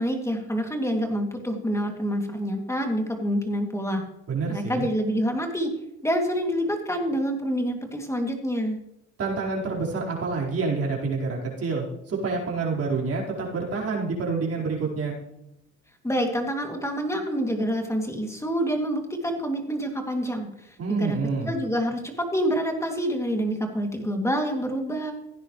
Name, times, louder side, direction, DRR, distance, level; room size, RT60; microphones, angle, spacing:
voice 1, 0.0-4.0 4.5-5.7 6.0-8.8 16.0-21.2 21.5-25.1, equal, 10° left, 3 dB, 2.6 m, -27 dB
voice 2, 4.3-4.9 9.2-15.2 20.8-21.5, right 4 dB, 45° right, -3 dB, 4.7 m, -28 dB
16.0 x 9.8 x 3.2 m, 0.83 s
supercardioid pair, 90°, 33 cm